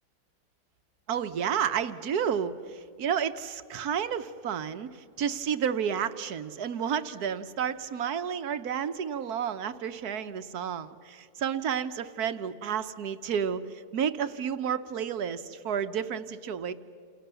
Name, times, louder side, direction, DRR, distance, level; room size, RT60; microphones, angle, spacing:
voice 1, 1.1-4.9 5.2-16.7, right 8 dB, 70° right, 11 dB, 1.4 m, -31 dB
28.5 x 28.0 x 6.9 m, 2.4 s
omnidirectional pair, 1.7 m